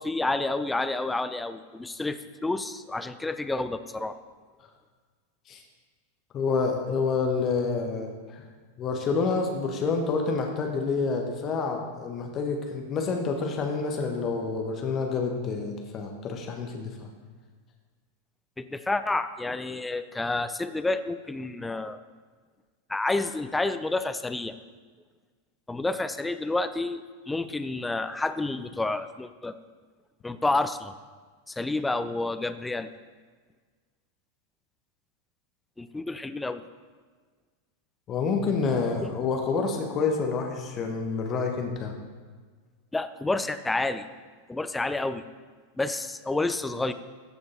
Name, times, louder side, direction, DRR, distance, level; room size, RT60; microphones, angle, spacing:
voice 1, 0.0-4.2 18.6-22.0 22.9-24.5 25.7-29.5 30.2-30.9 31.5-32.9 35.8-36.6 39.0-39.1 42.9-44.0 44.5-45.2 45.8-46.9, left 2 dB, 10° left, 11 dB, 0.5 m, -29 dB
voice 2, 6.3-8.4 8.8-17.1 38.1-41.9, left 4 dB, 30° left, 3 dB, 1.3 m, -28 dB
14.0 x 6.9 x 4.0 m, 1.5 s
figure-of-eight pair, 90°, 0 cm